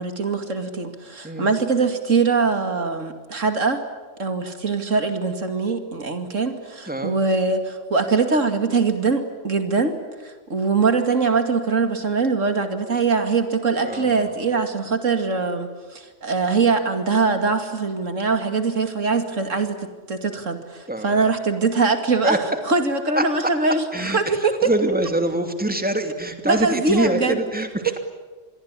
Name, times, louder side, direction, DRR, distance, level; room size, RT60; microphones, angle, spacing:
voice 1, 0.0-3.8 4.2-9.9 10.2-22.4 22.7-24.7 26.4-27.4, right 4 dB, 80° right, 7 dB, 2.8 m, -22 dB
voice 2, 13.7-14.3 20.9-21.3 22.2-22.6 23.2-23.5 23.9-27.7, right 1 dB, 5° right, 6 dB, 2.6 m, -25 dB
27.0 x 21.5 x 9.9 m, 1.3 s
omnidirectional pair, 1.3 m